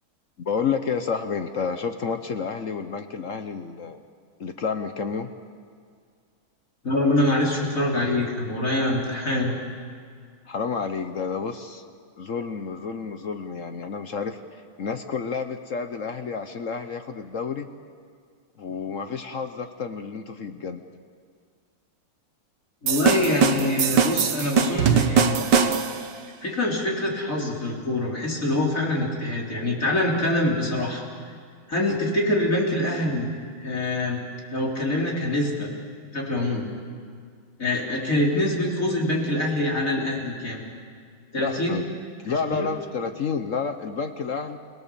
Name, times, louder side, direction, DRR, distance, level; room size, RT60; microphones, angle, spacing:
voice 1, 0.4-4.0 4.4-5.3 10.5-11.8 12.2-17.7 18.6-20.8 31.9-32.0 41.4-41.8 42.2-44.6, left 5 dB, 55° left, 8 dB, 0.9 m, -30 dB
voice 2, 6.8-9.5 22.8-25.4 26.4-31.0 31.7-33.3 33.6-34.2 34.5-35.7 36.1-36.7 37.6-40.6 41.3-41.8 42.5-42.7, left 1 dB, 40° left, -2 dB, 3.9 m, -24 dB
sound 1, 22.9-26.1, right 6 dB, 60° right, 1.6 m, -21 dB
29.5 x 18.0 x 7.0 m, 2.1 s
omnidirectional pair, 2.3 m